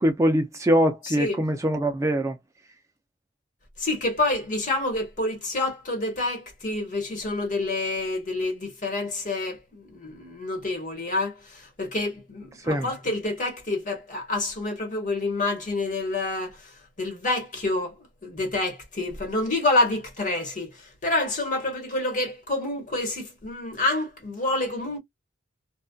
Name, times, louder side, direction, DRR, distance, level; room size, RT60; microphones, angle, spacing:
voice 1, 0.0-2.4 12.6-12.9, equal, 15° right, 0.4 m, -23 dB
voice 2, 1.0-1.4 3.8-25.0, left 2 dB, 45° left, 1.2 m, -28 dB
2.5 x 2.3 x 2.2 m
head